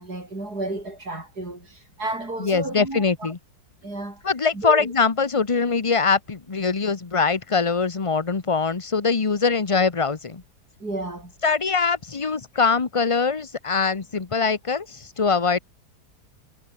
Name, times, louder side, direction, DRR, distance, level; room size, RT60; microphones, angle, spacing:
voice 1, 0.0-3.3 3.8-4.2 4.5-4.9 10.8-11.3, right 2 dB, 70° right, 7.6 m, -32 dB
voice 2, 2.4-3.4 4.2-10.4 11.4-15.6, left 5 dB, 25° left, 0.9 m, -22 dB
omnidirectional pair, 1.8 m